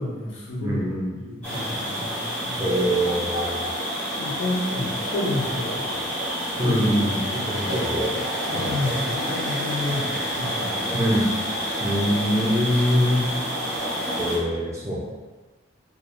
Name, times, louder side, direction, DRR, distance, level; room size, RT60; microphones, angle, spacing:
voice 1, 0.0-2.8 4.2-5.8 6.6-11.1 11.4-12.5, left 2 dB, 70° left, -5 dB, 0.7 m, -31 dB
voice 2, 0.6-1.1 2.6-3.6 6.6-8.1 8.5-8.9 10.9-11.3 11.8-13.2 14.2-15.1, equal, 15° right, -5 dB, 0.4 m, -24 dB
sound 1, 1.4-14.4, equal, 5° left, 1.0 m, -28 dB
3.0 x 2.3 x 2.2 m, 1.3 s
head